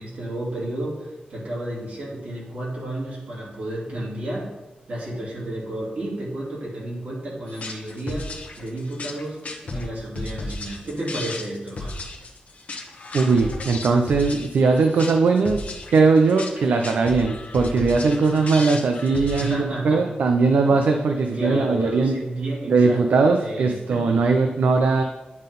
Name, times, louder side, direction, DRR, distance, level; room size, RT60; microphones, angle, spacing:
voice 1, 0.0-4.5 4.9-9.5 9.7-12.0 19.4-20.1 21.3-24.0, right 1 dB, 60° right, -6 dB, 2.9 m, -31 dB
sound 1, 7.5-19.5, left 2 dB, 50° left, 1.0 m, -34 dB
voice 2, 13.1-15.6 15.9-22.2 22.7-25.0, right 4 dB, 80° right, 4 dB, 0.5 m, -19 dB
9.5 x 3.8 x 5.3 m, 1.1 s
wide cardioid pair, 165°, 3 cm